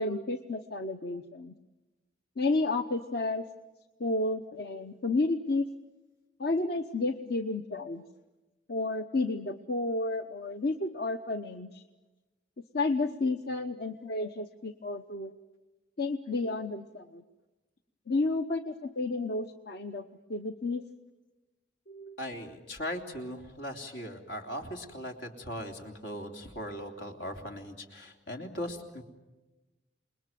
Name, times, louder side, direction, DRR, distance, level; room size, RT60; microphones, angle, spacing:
voice 1, 0.0-1.5 2.4-3.4 4.0-5.6 6.4-8.0 8.7-11.8 12.7-15.3 16.0-17.2 18.1-20.8 21.9-22.2, left 2 dB, 60° left, 8 dB, 0.9 m, -31 dB
voice 2, 22.2-29.0, equal, 85° left, 4 dB, 3.4 m, -39 dB
28.5 x 21.0 x 9.2 m, 1.1 s
head